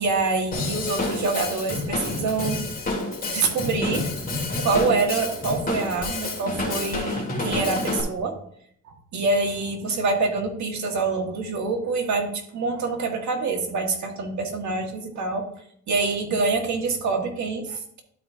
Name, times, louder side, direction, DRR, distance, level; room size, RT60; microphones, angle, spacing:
voice 1, 0.0-2.6 3.3-4.1 4.6-8.3 9.1-15.4 15.9-18.0, right 3 dB, 70° right, 2 dB, 1.8 m, -26 dB
Drum kit / Drum, 0.5-8.0, left 2 dB, 30° left, 2.3 m, -29 dB
12.0 x 5.0 x 2.8 m, 0.65 s
cardioid pair, 90°, 30 cm